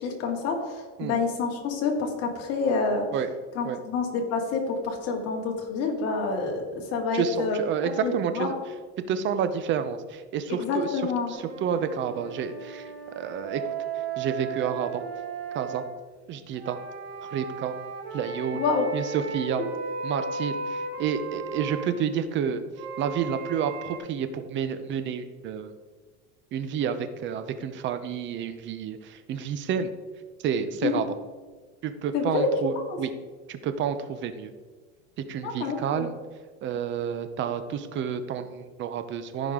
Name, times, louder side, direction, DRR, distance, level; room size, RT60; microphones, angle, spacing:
voice 1, 0.0-3.1 3.5-7.6 8.0-8.5 10.5-11.3 18.5-18.9 30.8-31.0 32.1-32.5 32.9-33.0 35.4-36.1, left 4 dB, 50° left, 1 dB, 2.2 m, -28 dB
voice 2, 7.1-8.6 9.1-11.0 11.3-13.6 14.2-15.0 15.5-15.8 16.3-16.8 17.3-17.7 18.1-18.6 18.9-19.6 20.0-22.6 23.0-25.7 26.5-29.9 30.4-31.1 31.8-33.1 33.5-34.5 35.3-36.1 36.6-39.5, right 7 dB, 35° right, 10 dB, 0.8 m, -29 dB
sound 1, 11.3-15.8 16.6-21.9 22.7-24.0, right 4 dB, 85° right, 2.7 m, -35 dB
14.5 x 5.2 x 3.7 m, 1.4 s
supercardioid pair, 140°, 32 cm